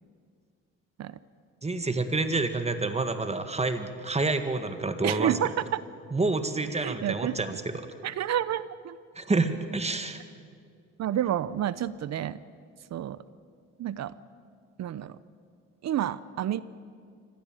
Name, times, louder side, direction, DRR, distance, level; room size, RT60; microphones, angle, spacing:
voice 1, 1.6-5.3 6.1-7.9 9.2-10.2, right 3 dB, 20° right, 8 dB, 1.9 m, -28 dB
voice 2, 5.0-5.8 6.7-7.6 8.0-9.0 11.0-12.4 12.9-13.2 13.8-14.2 14.8-15.2 15.8-16.6, right 11 dB, 60° right, 17 dB, 0.7 m, -29 dB
24.0 x 17.0 x 9.0 m, 2.2 s
cardioid pair, 90°, 30 cm